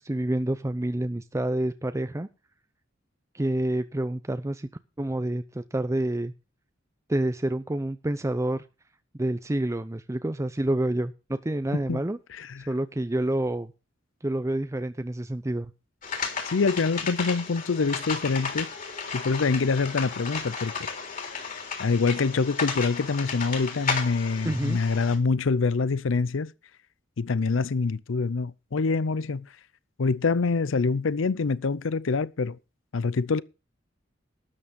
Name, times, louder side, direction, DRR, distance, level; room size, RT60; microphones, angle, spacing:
voice 1, 0.0-2.3 3.3-4.7 5.0-6.3 7.1-8.6 9.2-12.2 12.7-13.7 14.2-15.7 24.4-24.8, right 1 dB, 15° right, 0.6 m, -28 dB
voice 2, 12.3-12.7 16.4-18.7 19.1-20.9 21.5-26.5 27.2-29.5 30.0-32.6 32.9-33.4, left 4 dB, 80° left, 0.6 m, -25 dB
sound 1, 16.0-25.2, left 5 dB, 45° left, 3.6 m, -33 dB
13.0 x 8.8 x 5.2 m
head